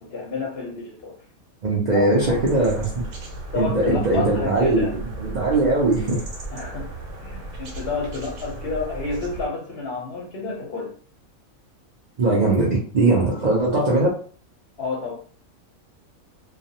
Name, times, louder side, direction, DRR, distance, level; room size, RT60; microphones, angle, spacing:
voice 1, 0.0-1.2 1.9-2.4 3.5-4.9 6.5-6.9 7.2-10.9 13.1-13.3 14.8-15.2, left 4 dB, 60° left, -1 dB, 0.7 m, -30 dB
voice 2, 1.6-2.9 3.5-4.9 5.2-6.2 12.2-14.1, right 2 dB, 55° right, -5 dB, 0.5 m, -20 dB
sound 1, 2.2-9.5, right 2 dB, 85° right, 1.1 m, -35 dB
2.3 x 2.2 x 2.7 m, 0.42 s
omnidirectional pair, 1.4 m